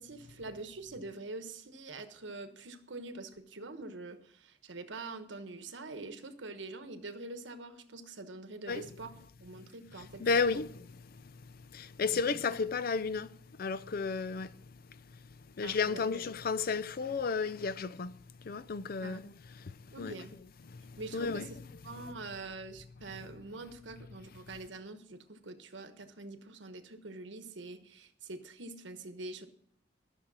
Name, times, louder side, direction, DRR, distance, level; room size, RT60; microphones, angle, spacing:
voice 1, 0.0-9.1 9.4-10.6 12.1-12.4 15.6-16.1 19.0-19.2 19.9-20.4 21.0-21.4 21.8-29.5, right 3 dB, 85° right, 1.2 m, -45 dB
voice 2, 10.2-10.7 11.0-15.3 15.6-20.2 20.7-21.5, left 4 dB, 55° left, 0.5 m, -34 dB
12.5 x 6.7 x 6.1 m
head